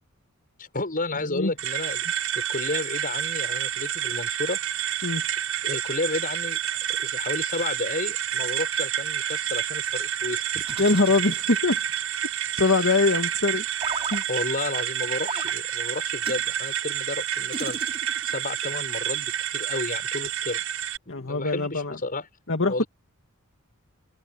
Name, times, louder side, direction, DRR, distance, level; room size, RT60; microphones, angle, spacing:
voice 1, 0.6-2.1 2.4-4.6 5.6-6.6 6.9-10.7 12.7-12.8 14.3-17.8 18.2-20.6 21.1-22.3 22.7-22.9, left 2 dB, 40° left, 7.1 m, -32 dB
voice 2, 1.1-1.5 5.0-5.2 10.8-11.8 12.5-13.6 14.1-14.2 21.1-22.0 22.5-22.8, left 3 dB, 60° left, 2.2 m, -23 dB
sound 1, 1.6-21.0, right 10 dB, 75° right, 7.8 m, -29 dB
sound 2, 10.6-11.9 13.8-14.2 15.3-15.5 16.2-16.4 17.5-18.4, right 4 dB, 30° right, 4.0 m, -35 dB
head